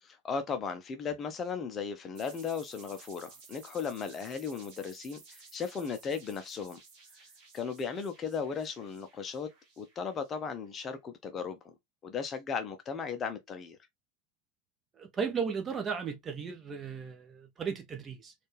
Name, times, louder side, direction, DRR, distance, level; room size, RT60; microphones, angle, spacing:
voice 1, 0.0-6.8 7.5-9.5 9.8-11.6 12.0-13.8, left 6 dB, 25° left, 0.6 m, -36 dB
sound 1, 2.1-10.7, right 4 dB, 40° right, 1.5 m, -55 dB
voice 2, 15.0-18.3, right 6 dB, 20° right, 1.0 m, -35 dB
4.3 x 2.5 x 3.1 m
figure-of-eight pair, 90°, 0 cm